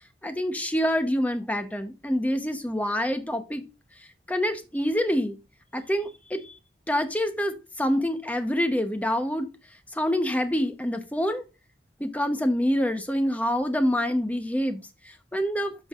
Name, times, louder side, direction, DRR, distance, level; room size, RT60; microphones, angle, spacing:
voice 1, 0.2-3.6 4.3-5.4 5.7-6.6 6.9-9.5 9.9-11.4 12.0-15.9, equal, 10° left, 0.9 m, -26 dB
13.5 x 4.7 x 2.5 m
head